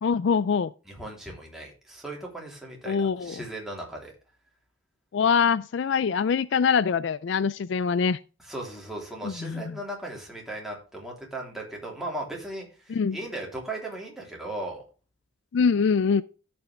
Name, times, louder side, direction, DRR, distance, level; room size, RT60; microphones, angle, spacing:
voice 1, 0.0-0.7 2.9-3.3 5.1-8.2 9.2-9.7 12.9-13.2 15.5-16.2, left 6 dB, 60° left, 0.3 m, -24 dB
voice 2, 0.8-4.1 8.4-14.9, right 1 dB, ahead, 3.2 m, -37 dB
13.5 x 6.1 x 3.3 m
head